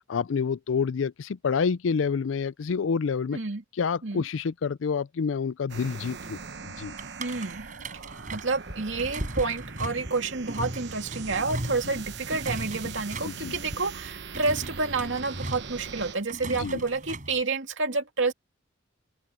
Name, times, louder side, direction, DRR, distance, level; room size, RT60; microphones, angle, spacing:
voice 1, 0.1-3.4 3.8-6.4 6.6-6.9 13.2-13.5 16.6-16.8, left 5 dB, 90° left, 0.4 m, -28 dB
voice 2, 3.3-3.6 4.0-4.2 7.2-7.6 7.9-18.3, right 3 dB, 80° right, 2.3 m, -29 dB
sound 1, 5.7-16.2, right 5 dB, 60° right, 1.0 m, -41 dB
sound 2, 7.0-17.4, right 1 dB, 45° right, 5.1 m, -38 dB
open air
head